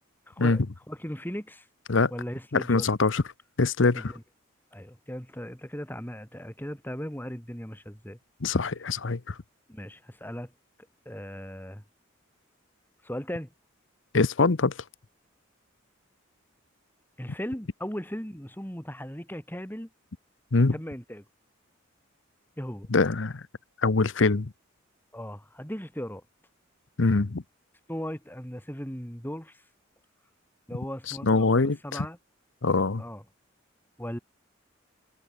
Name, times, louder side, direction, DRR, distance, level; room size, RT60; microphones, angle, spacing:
voice 1, 0.3-0.6 0.9-1.7 2.1-2.9 3.9-4.2 4.7-8.2 9.7-10.5 11.0-11.8 13.0-13.5 17.2-19.9 20.7-21.2 22.6-22.9 25.1-26.2 27.9-29.6 30.7-32.2 33.0-33.2 34.0-34.2, equal, 10° left, 4.8 m, -37 dB
voice 2, 2.5-3.2 3.6-4.1 8.4-9.3 14.1-14.7 20.5-20.7 22.9-23.4 23.8-24.5 27.0-27.4 31.2-32.1 32.6-33.0, left 3 dB, 65° left, 0.8 m, -23 dB
head